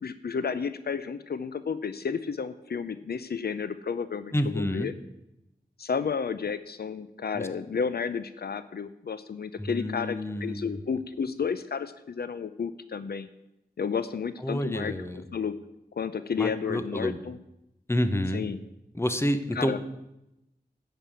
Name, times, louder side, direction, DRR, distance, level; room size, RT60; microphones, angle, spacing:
voice 1, 0.0-4.9 5.8-13.3 13.8-14.9 15.3-15.6 15.9-17.4 18.3-18.6 19.5-19.8, left 6 dB, 75° left, 13 dB, 0.5 m, -32 dB
voice 2, 4.3-4.9 7.3-7.5 9.6-10.8 14.4-15.2 16.4-17.2 17.9-18.4 18.9-19.8, left 1 dB, 15° left, 10 dB, 0.9 m, -29 dB
11.5 x 5.5 x 8.6 m, 0.88 s
wide cardioid pair, 85°, 16 cm